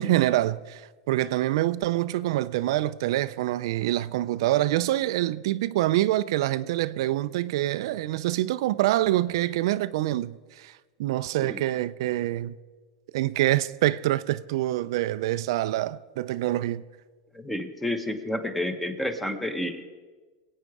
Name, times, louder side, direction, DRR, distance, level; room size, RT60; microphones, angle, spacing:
voice 1, 0.0-12.6 13.1-16.8, right 15 dB, 70° right, 0.4 m, -26 dB
voice 2, 17.3-19.8, left 1 dB, 5° left, 0.9 m, -30 dB
21.0 x 8.7 x 4.8 m
supercardioid pair, 145°, 3 cm